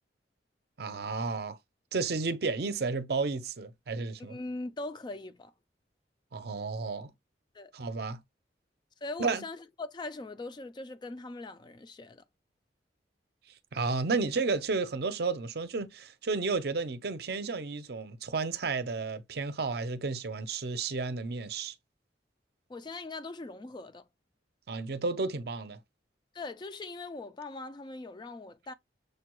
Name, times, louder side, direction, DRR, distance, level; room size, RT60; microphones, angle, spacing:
voice 1, 0.8-1.6 1.9-4.4 6.3-7.1 7.7-8.2 9.2-9.4 13.7-21.7 24.7-25.8, right 4 dB, 60° right, 0.6 m, -32 dB
voice 2, 4.2-5.5 7.5-7.7 9.0-12.2 22.7-24.0 26.3-28.7, left 2 dB, 25° left, 0.3 m, -41 dB
6.5 x 2.2 x 3.0 m
head